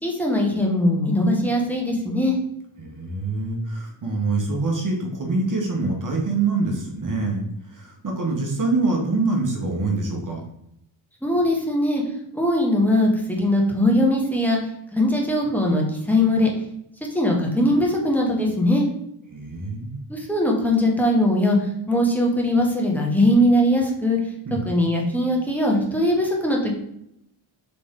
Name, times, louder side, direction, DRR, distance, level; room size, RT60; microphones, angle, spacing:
voice 1, 0.0-2.3 11.2-12.0 12.4-14.6 14.9-16.5 17.1-18.8 20.1-21.6 21.9-24.2 24.5-26.7, left 1 dB, 5° left, -1 dB, 1.2 m, -20 dB
voice 2, 2.8-7.4 7.7-10.4 19.3-20.0 24.4-24.7, right 3 dB, 40° right, 1 dB, 1.3 m, -25 dB
4.1 x 3.4 x 3.7 m, 0.77 s
cardioid pair, 90°, 49 cm